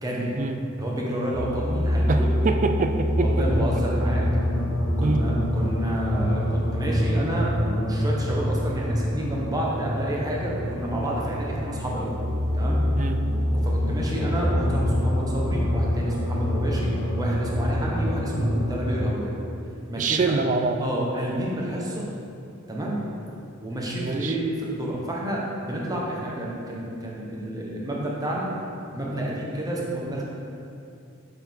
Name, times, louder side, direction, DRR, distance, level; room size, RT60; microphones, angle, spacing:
voice 1, 0.0-0.4 0.8-2.5 3.2-4.2 5.0-12.1 12.5-12.8 13.6-16.9 17.2-19.3 19.9-20.3 20.8-22.1 22.7-23.0 23.6-28.5 28.9-30.2, right 1 dB, 20° right, -4 dB, 1.1 m, -30 dB
sound 1, 1.3-19.2, equal, 75° left, 1.1 m, -25 dB
voice 2, 2.1-3.5 5.0-5.3 13.0-13.2 20.0-20.9 24.0-24.4, right 3 dB, 35° right, 6 dB, 0.4 m, -25 dB
7.1 x 5.7 x 3.6 m, 2.5 s
head